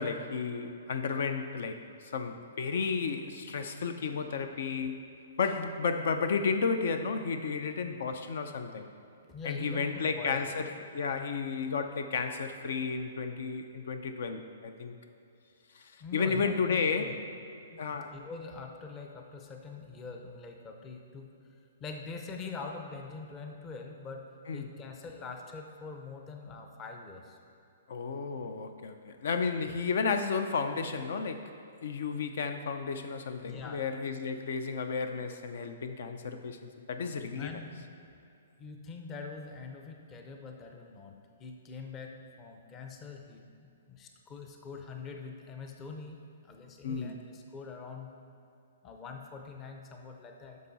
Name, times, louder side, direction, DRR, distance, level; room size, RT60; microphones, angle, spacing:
voice 1, 0.0-1.9 2.1-5.1 5.4-8.9 9.4-15.0 15.7-17.1 17.8-18.1 24.5-24.7 27.9-31.5 31.8-36.6 36.9-37.5 46.8-47.1, left 5 dB, 65° left, 8 dB, 0.5 m, -32 dB
voice 2, 9.3-9.9 10.2-10.5 16.0-17.2 17.7-21.3 21.8-24.3 24.5-27.4 33.4-33.8 37.4-38.2 38.6-48.1 48.8-50.6, left 4 dB, 20° left, 3 dB, 0.6 m, -44 dB
10.5 x 6.2 x 4.0 m, 2.7 s
hypercardioid pair, 165°, 0 cm